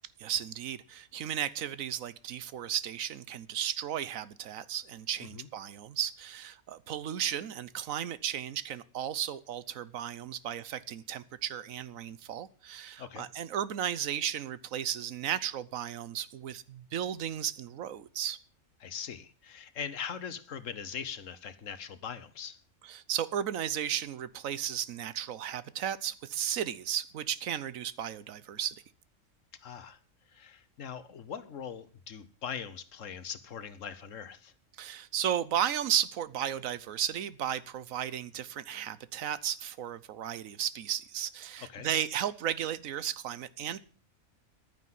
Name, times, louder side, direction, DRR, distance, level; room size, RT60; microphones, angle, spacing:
voice 1, 0.2-18.4 22.8-28.7 34.8-43.8, right 10 dB, 75° right, 1.2 m, -34 dB
voice 2, 18.8-22.6 29.6-30.0 30.3-34.5 41.6-41.9, left 7 dB, 70° left, 1.3 m, -41 dB
11.0 x 9.6 x 7.6 m
omnidirectional pair, 1.4 m